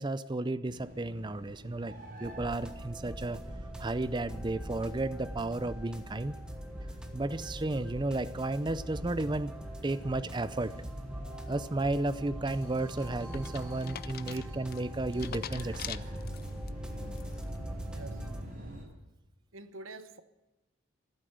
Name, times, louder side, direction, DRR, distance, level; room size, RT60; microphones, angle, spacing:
voice 1, 0.0-1.9 2.2-3.4 3.8-6.4 7.1-9.5 9.8-10.8 11.5-16.0, right 2 dB, 20° right, 0.5 m, -33 dB
sound 1, 0.6-18.8, equal, 40° right, 6.6 m, -47 dB
sound 2, 2.2-18.4, right 1 dB, 5° right, 1.3 m, -42 dB
sound 3, 12.5-16.7 17.1-17.6, left 10 dB, 45° left, 0.5 m, -44 dB
voice 2, 17.9-18.4 19.5-20.2, right 2 dB, 70° right, 1.1 m, -47 dB
14.5 x 12.0 x 7.8 m
head